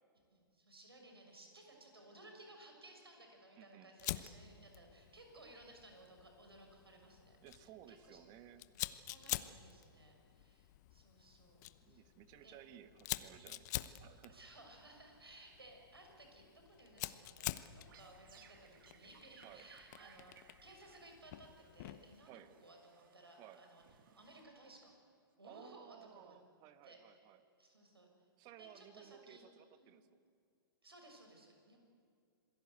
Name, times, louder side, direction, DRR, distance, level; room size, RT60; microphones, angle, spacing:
voice 1, 0.3-7.4 7.9-8.2 8.7-8.8 9.1-12.0 12.4-12.6 14.3-23.8 24.2-24.9 25.4-26.4 26.8-27.2 27.6-28.1 28.6-29.4 29.8-29.9 30.8-31.8, right 2 dB, 90° right, 2 dB, 6.2 m, -59 dB
voice 2, 3.6-3.9 7.4-8.6 11.9-14.4 19.4-19.7 22.2-22.5 23.4-23.6 25.4-27.4 28.4-30.1, right 11 dB, 35° right, 11 dB, 1.5 m, -58 dB
Fire, 4.0-22.2, left 15 dB, 45° left, 1.0 m, -48 dB
sound 1, 17.6-24.9, right 8 dB, 60° right, 2.5 m, -65 dB
27.0 x 21.0 x 8.2 m, 2.3 s
hypercardioid pair, 115°, 12 cm